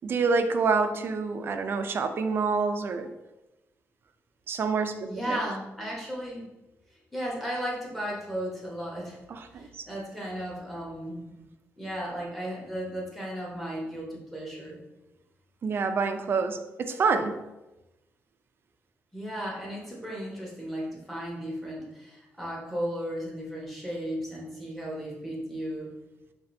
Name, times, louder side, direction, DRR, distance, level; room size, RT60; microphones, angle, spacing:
voice 1, 0.0-3.1 4.5-5.4 9.3-9.9 15.6-17.4, right 4 dB, 45° right, 8 dB, 0.3 m, -27 dB
voice 2, 5.1-6.5 7.1-9.2 9.6-11.3 11.8-14.8 19.1-25.9, equal, ahead, -4 dB, 1.0 m, -35 dB
5.1 x 2.6 x 2.6 m, 1.0 s
cardioid pair, 135°, 5 cm